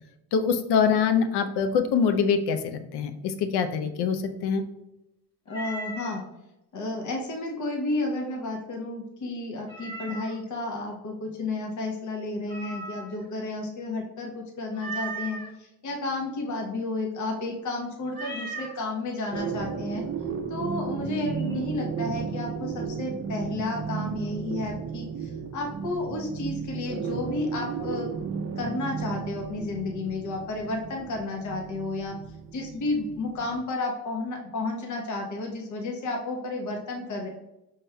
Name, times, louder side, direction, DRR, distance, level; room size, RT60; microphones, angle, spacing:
voice 1, 0.3-4.6 21.0-21.2, left 6 dB, 60° left, 8 dB, 0.6 m, -24 dB
voice 2, 5.5-6.2 6.7-20.0 20.5-28.1 28.6-32.2 32.5-37.3, left 2 dB, 40° left, 2 dB, 0.9 m, -32 dB
Meow, 5.5-6.2 9.7-10.5 12.5-13.3 14.8-15.5 18.1-18.8, right 3 dB, 10° left, 1.4 m, -37 dB
sound 1, 19.3-33.6, right 6 dB, 30° right, 0.6 m, -34 dB
5.2 x 3.3 x 2.2 m, 0.91 s
hypercardioid pair, 55°, 47 cm